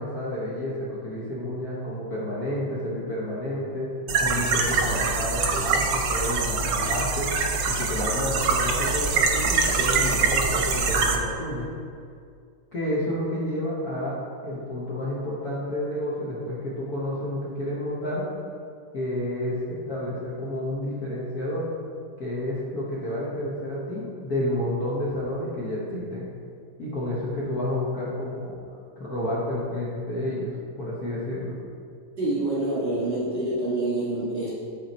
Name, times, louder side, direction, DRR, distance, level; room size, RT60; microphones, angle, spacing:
voice 1, 0.0-3.9 4.2-7.3 7.6-11.7 12.7-14.2 14.4-18.3 18.9-21.7 22.2-26.3 26.8-28.6 29.0-31.6, left 1 dB, 50° left, -7 dB, 1.3 m, -30 dB
sound 1, 4.1-11.2, right 4 dB, 70° right, 1.3 m, -24 dB
voice 2, 32.2-34.5, right 2 dB, 30° right, -9 dB, 1.9 m, -26 dB
8.6 x 4.4 x 4.3 m, 2.3 s
omnidirectional pair, 2.4 m